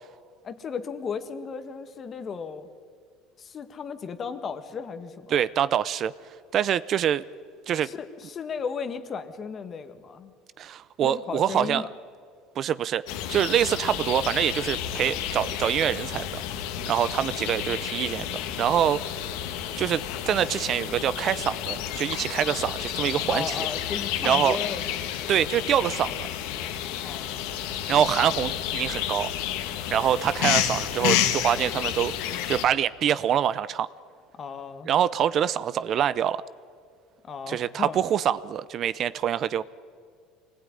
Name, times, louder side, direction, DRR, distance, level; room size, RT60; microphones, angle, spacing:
voice 1, 0.4-2.7 3.4-5.3 7.8-10.3 11.0-11.9 23.3-24.8 27.0-27.3 34.3-34.9 37.2-38.0, left 6 dB, 30° left, 9 dB, 1.8 m, -35 dB
voice 2, 5.3-6.1 6.5-7.2 7.7-7.9 10.6-11.8 12.6-16.3 16.6-19.2 19.8-23.7 24.2-24.6 25.3-26.3 27.9-29.3 29.6-32.1 32.5-33.9 34.9-36.4 37.5-39.6, right 9 dB, 40° right, 16 dB, 0.6 m, -25 dB
sound 1, 13.1-32.7, left 11 dB, 75° left, 2.1 m, -30 dB
26.0 x 20.0 x 9.9 m, 2.1 s
cardioid pair, 140°, 0 cm